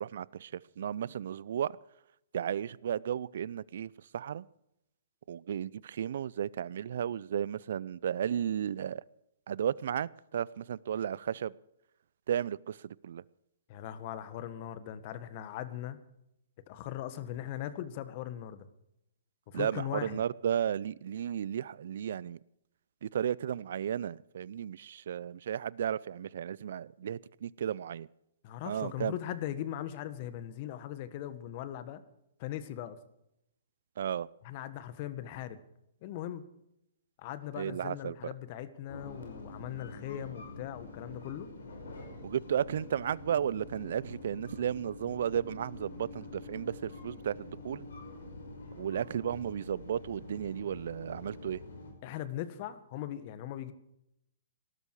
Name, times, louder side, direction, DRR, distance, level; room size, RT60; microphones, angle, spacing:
voice 1, 0.0-1.8 2.3-4.4 5.3-9.0 9.5-11.5 12.3-13.2 19.5-22.4 23.0-28.1 28.7-29.2 34.0-34.3 37.6-38.2 42.2-47.9 48.8-51.6, right 9 dB, 65° right, 0.5 m, -34 dB
voice 2, 13.7-16.0 16.7-18.7 19.5-20.2 28.4-32.0 32.4-33.0 34.4-35.6 36.0-36.4 37.2-41.5 52.0-53.7, left 11 dB, 45° left, 1.6 m, -39 dB
sound 1, 38.9-51.9, left 2 dB, 70° left, 5.5 m, -46 dB
19.0 x 12.5 x 4.8 m
hypercardioid pair, 125°, 0 cm